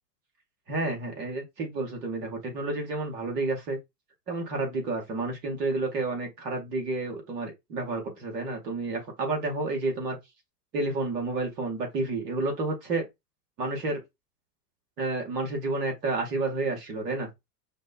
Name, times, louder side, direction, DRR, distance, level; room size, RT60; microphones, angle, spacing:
voice 1, 0.7-3.8 4.3-10.2 10.7-13.1 13.6-14.0 15.0-17.3, right 2 dB, 80° right, 2.2 m, -30 dB
5.1 x 2.2 x 4.2 m
hypercardioid pair, 85°, 47 cm